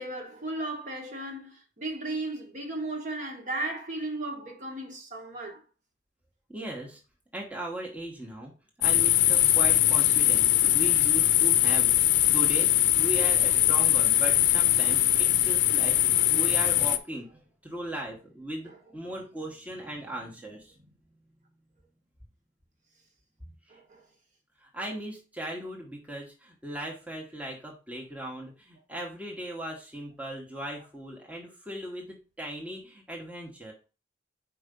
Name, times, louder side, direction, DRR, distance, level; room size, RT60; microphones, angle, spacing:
voice 1, 0.0-5.6 18.6-18.8 23.7-24.0, right 2 dB, 40° right, 1.4 m, -35 dB
voice 2, 6.5-7.0 7.3-8.5 8.8-20.9 23.7-23.8 24.6-33.7, right 1 dB, 5° right, 1.1 m, -38 dB
sound 1, 8.8-17.0, left 13 dB, 65° left, 0.6 m, -22 dB
4.8 x 4.6 x 5.2 m
head